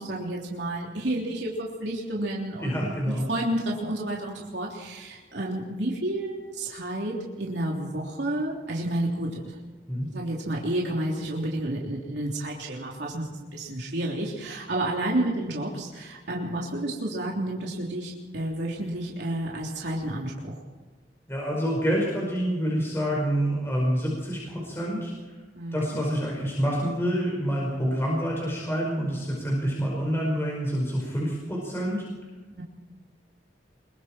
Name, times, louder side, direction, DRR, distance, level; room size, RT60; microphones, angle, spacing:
voice 1, 0.0-9.4 10.1-20.6 25.5-26.0 32.6-32.7, right 1 dB, 70° right, -3 dB, 3.4 m, -30 dB
voice 2, 2.6-3.2 9.9-10.1 21.3-25.1 25.7-32.0, equal, 15° left, -3 dB, 5.2 m, -27 dB
25.5 x 23.0 x 4.5 m, 1.3 s
head